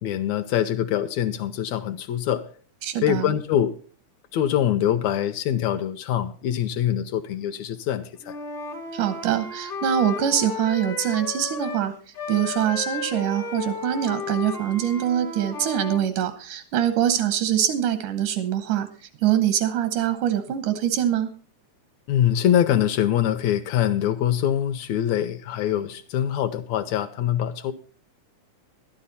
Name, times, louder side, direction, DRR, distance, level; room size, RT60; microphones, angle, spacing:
voice 1, 0.0-2.4 3.0-3.7 4.3-8.4 22.1-27.7, left 10 dB, 75° left, 10 dB, 1.8 m, -24 dB
voice 2, 2.8-3.3 8.9-11.9 12.3-18.9 19.2-21.3, right 10 dB, 85° right, 10 dB, 2.6 m, -24 dB
Wind instrument woodwind instrument, 8.2-11.9 12.1-16.0, left 4 dB, 40° left, 0.7 m, -33 dB
12.0 x 12.0 x 4.1 m, 0.41 s
omnidirectional pair, 3.5 m